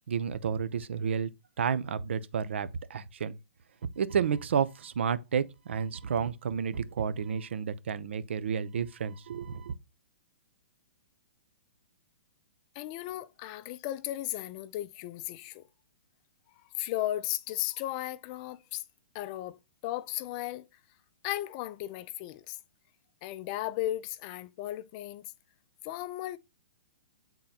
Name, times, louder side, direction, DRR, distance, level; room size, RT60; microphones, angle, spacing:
voice 1, 0.1-1.3 1.6-3.4 4.0-9.7, right 7 dB, 75° right, 0.7 m, -31 dB
voice 2, 12.8-15.6 16.8-18.8 19.1-19.6 19.8-20.7 21.2-22.6 23.2-25.3 25.8-26.4, left 14 dB, 35° left, 0.4 m, -35 dB
8.7 x 3.8 x 2.9 m
hypercardioid pair, 140°, 6 cm